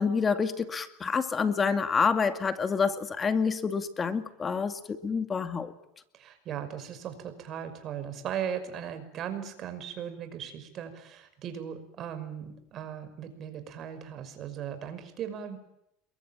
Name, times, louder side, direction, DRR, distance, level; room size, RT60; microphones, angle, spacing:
voice 1, 0.0-5.7, left 5 dB, 25° left, 9 dB, 2.2 m, -28 dB
voice 2, 6.1-15.6, right 9 dB, 45° right, 8 dB, 5.8 m, -38 dB
28.0 x 23.0 x 9.1 m, 0.82 s
supercardioid pair, 110°, 0 cm